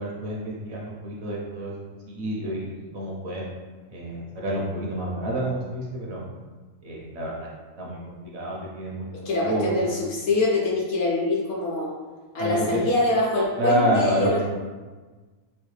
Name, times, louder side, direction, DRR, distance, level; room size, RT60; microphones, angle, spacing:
voice 1, 0.0-1.7 2.1-3.4 3.9-6.2 6.8-7.5 7.8-9.1 9.4-10.0 12.4-12.8 13.6-14.4, equal, 60° right, -4 dB, 0.8 m, -28 dB
voice 2, 9.2-11.9 12.3-14.4, left 2 dB, 65° left, -3 dB, 0.9 m, -24 dB
3.3 x 2.5 x 3.1 m, 1.3 s
omnidirectional pair, 1.4 m